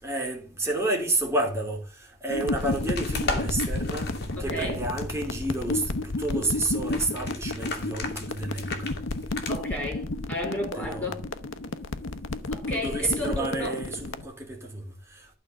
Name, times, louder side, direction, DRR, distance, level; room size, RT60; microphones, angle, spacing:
voice 1, 0.0-9.3 10.8-11.1 12.7-15.3, right 2 dB, 15° right, 3.0 m, -30 dB
sound 1, 2.3-14.2, left 2 dB, 85° left, 0.9 m, -32 dB
sound 2, 2.6-9.6, left 2 dB, 55° left, 2.3 m, -37 dB
voice 2, 4.4-4.8 9.5-11.3 12.5-13.8, left 1 dB, 10° left, 4.4 m, -33 dB
12.5 x 4.5 x 6.5 m
head